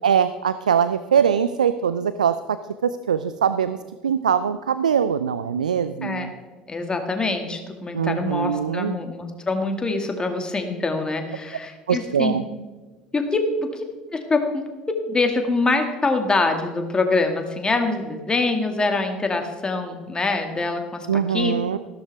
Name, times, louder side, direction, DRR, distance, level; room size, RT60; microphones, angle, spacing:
voice 1, 0.0-2.6 2.8-3.8 4.0-6.3 7.9-9.0 11.9-12.4 21.1-21.8, right 7 dB, 85° right, 13 dB, 0.4 m, -22 dB
voice 2, 6.7-12.4 13.1-13.8 14.1-14.7 15.1-21.6, left 3 dB, 20° left, 4 dB, 2.2 m, -24 dB
15.0 x 12.5 x 3.5 m, 1.3 s
hypercardioid pair, 65°, 4 cm